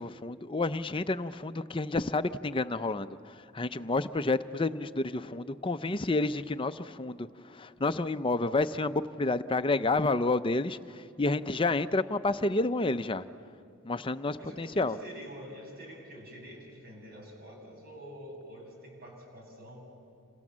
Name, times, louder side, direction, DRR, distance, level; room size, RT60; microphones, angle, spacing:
voice 1, 0.0-13.2 13.8-14.9, left 2 dB, 25° left, 11 dB, 0.6 m, -30 dB
voice 2, 14.4-19.9, equal, 45° right, 1 dB, 6.6 m, -46 dB
28.0 x 27.5 x 7.4 m, 2.5 s
head